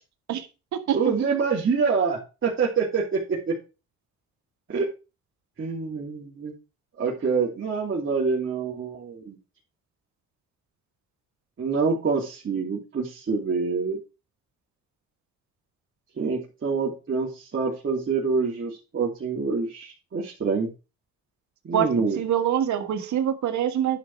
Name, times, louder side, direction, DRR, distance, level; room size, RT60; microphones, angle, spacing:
voice 1, 0.9-3.5 4.7-4.9 5.6-6.5 7.0-9.4 11.6-14.0 16.2-20.7 21.6-22.2, right 5 dB, 40° right, -4 dB, 2.9 m, -26 dB
voice 2, 22.2-24.0, right 10 dB, 70° right, 7 dB, 1.6 m, -24 dB
10.5 x 5.1 x 6.0 m, 0.30 s
cardioid pair, 90°, 30 cm